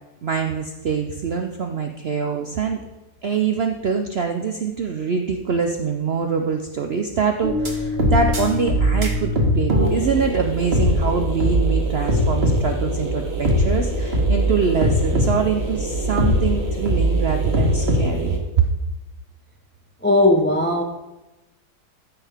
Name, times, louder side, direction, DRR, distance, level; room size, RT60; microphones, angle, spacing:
voice 1, 0.2-2.8 3.2-18.4, right 5 dB, 65° right, 4 dB, 0.6 m, -24 dB
sound 1, 7.4-18.4, equal, 40° right, 1.6 m, -21 dB
voice 2, 20.0-20.8, left 1 dB, 15° left, 3 dB, 0.3 m, -17 dB
13.5 x 5.5 x 3.5 m, 1.0 s
omnidirectional pair, 1.8 m